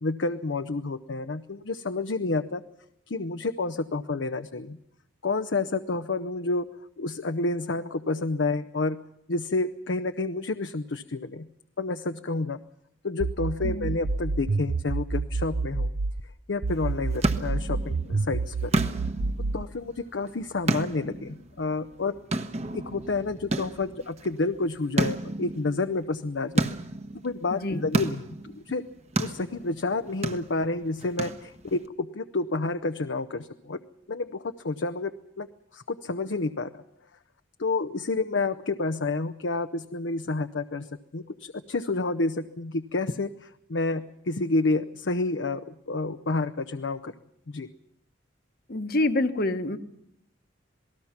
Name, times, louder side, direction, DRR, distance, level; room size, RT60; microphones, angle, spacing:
voice 1, 0.0-2.6 3.1-4.8 5.2-6.7 7.0-9.0 9.3-11.5 11.8-12.6 13.0-15.9 16.5-18.7 19.5-22.2 22.7-26.7 27.2-28.8 29.2-33.8 34.1-35.5 35.7-36.8 37.6-45.6 45.9-47.1 47.5-47.7, left 3 dB, 70° left, 9 dB, 0.7 m, -29 dB
sound 1, 13.2-16.2 16.6-19.6, right 3 dB, 80° right, 0.8 m, -28 dB
sound 2, 16.7-31.9, right 2 dB, 35° right, 1.2 m, -32 dB
voice 2, 27.5-27.8 48.7-49.8, left 2 dB, 55° left, 9 dB, 1.3 m, -26 dB
27.5 x 19.0 x 5.9 m, 0.78 s
head